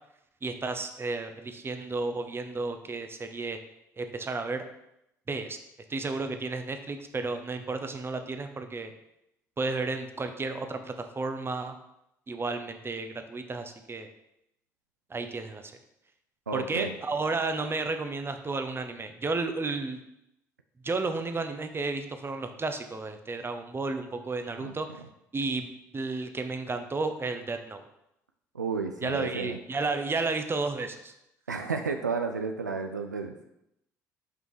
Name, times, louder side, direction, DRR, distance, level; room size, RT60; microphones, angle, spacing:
voice 1, 0.4-3.6 4.0-4.6 5.3-5.6 5.9-8.9 9.6-11.8 12.3-14.1 15.1-15.7 16.5-20.0 20.8-24.9 25.3-27.8 29.0-31.1, right 3 dB, 25° right, 7 dB, 0.9 m, -32 dB
voice 2, 16.5-16.9 24.6-24.7 28.5-29.6 31.5-33.5, right 4 dB, 90° right, 5 dB, 0.4 m, -32 dB
5.9 x 5.4 x 4.8 m, 0.82 s
figure-of-eight pair, 50°, 9 cm